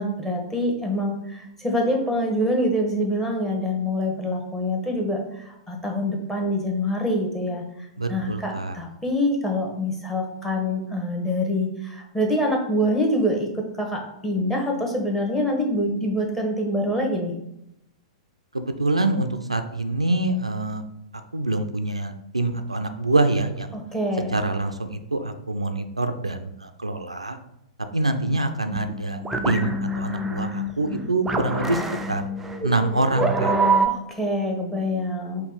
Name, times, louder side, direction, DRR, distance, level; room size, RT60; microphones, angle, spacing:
voice 1, 0.0-5.2 5.5-7.6 8.1-17.3 23.7-24.3 33.8-35.5, left 1 dB, 10° left, 0 dB, 1.0 m, -25 dB
voice 2, 8.0-8.8 18.5-20.8 21.3-23.8 24.3-27.4 27.9-31.8 32.1-32.3 32.6-33.5, right 2 dB, 85° right, 8 dB, 0.4 m, -25 dB
sound 1, 28.7-33.9, right 2 dB, 10° right, 0.4 m, -26 dB
5.1 x 2.3 x 3.8 m, 0.82 s
figure-of-eight pair, 100°, 3 cm